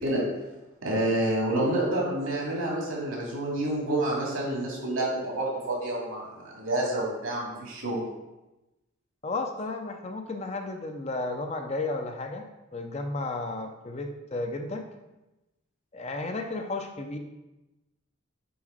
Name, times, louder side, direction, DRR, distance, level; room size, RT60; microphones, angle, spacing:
voice 1, 0.8-8.0, right 1 dB, 80° right, -3 dB, 2.5 m, -28 dB
voice 2, 9.2-12.4 12.7-14.8 15.9-17.2, left 2 dB, 30° left, 5 dB, 0.5 m, -33 dB
7.0 x 3.7 x 5.0 m, 1.0 s
head